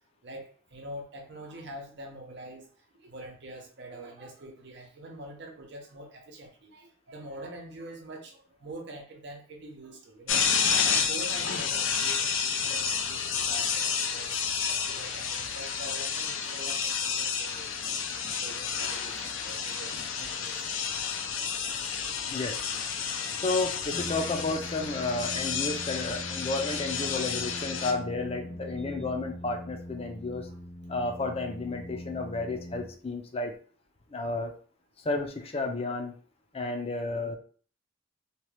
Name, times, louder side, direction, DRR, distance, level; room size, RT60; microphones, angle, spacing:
voice 1, 0.2-2.7 3.0-10.4 10.8-14.4 14.6-18.0 18.3-20.8 22.0-22.1 23.4-23.5 28.7-28.8, right 1 dB, 60° right, 1 dB, 0.7 m, -45 dB
sound 1, 10.3-27.9, left 6 dB, 85° left, 0.5 m, -30 dB
voice 2, 22.3-22.6 23.4-30.5 30.9-33.5 34.1-34.5 35.0-36.1 36.5-37.4, left 3 dB, 30° left, 4 dB, 0.5 m, -32 dB
Brass instrument, 23.9-33.4, equal, 60° left, 0.9 m, -42 dB
2.9 x 2.3 x 3.1 m, 0.43 s
head